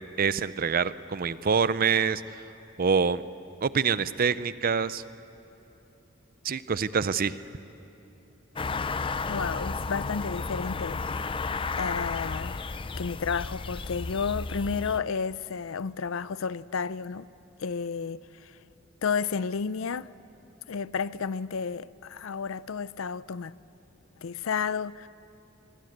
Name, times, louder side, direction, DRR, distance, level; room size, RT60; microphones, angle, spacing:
voice 1, 0.2-2.2 2.8-3.2 3.6-5.0 6.4-7.4, right 6 dB, 45° right, 0.6 m, -25 dB
sound 1, 8.6-15.0, left 4 dB, 25° left, 0.5 m, -33 dB
voice 2, 9.3-12.6 13.0-17.3 17.6-18.6 19.0-20.1 20.7-23.5 24.2-25.1, left 5 dB, 70° left, 0.5 m, -32 dB
27.5 x 22.5 x 8.0 m
head